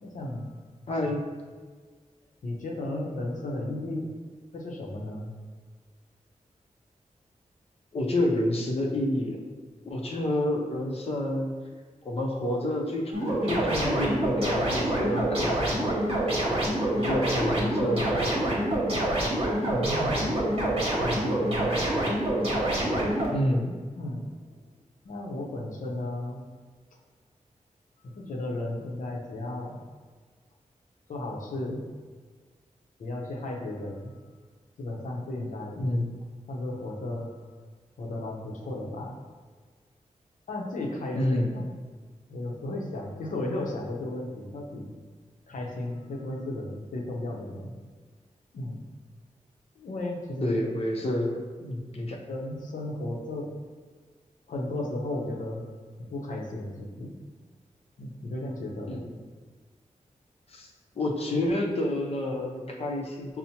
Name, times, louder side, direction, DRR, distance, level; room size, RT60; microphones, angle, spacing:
voice 1, 0.0-0.6 1.0-1.1 2.4-4.1 4.5-5.3 19.7-20.4 20.9-22.1 22.6-23.1 23.9-24.3 25.0-26.4 28.1-29.8 31.1-31.9 33.0-34.1 34.8-35.8 36.5-37.4 38.0-39.2 40.5-41.5 42.3-44.9 45.5-47.7 48.5-48.8 49.8-50.7 52.3-53.5 54.5-55.7 56.0-57.1 58.0-59.1, left 1 dB, 90° left, -1 dB, 0.7 m, -34 dB
voice 2, 0.9-1.2 7.9-9.4 9.9-11.5 12.0-16.3 17.0-18.5 23.3-23.7 35.8-36.1 41.1-41.7 50.4-52.2 58.9-59.1 60.5-60.7 61.0-63.4, left 1 dB, 50° left, 0 dB, 0.6 m, -29 dB
sound 1, 13.1-23.3, right 1 dB, 45° right, 0.9 m, -26 dB
5.5 x 2.1 x 2.8 m, 1.5 s
wide cardioid pair, 135°, 13 cm